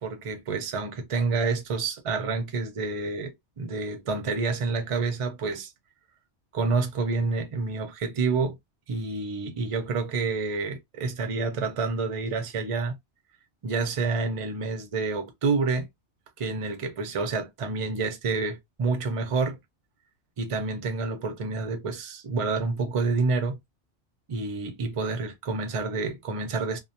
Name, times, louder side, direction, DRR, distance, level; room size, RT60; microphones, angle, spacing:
voice 1, 0.0-5.7 6.5-8.6 8.9-13.0 13.6-15.9 16.4-19.6 20.4-23.6 24.3-26.8, right 4 dB, 45° right, 0.4 m, -28 dB
2.2 x 2.1 x 2.7 m
omnidirectional pair, 1.2 m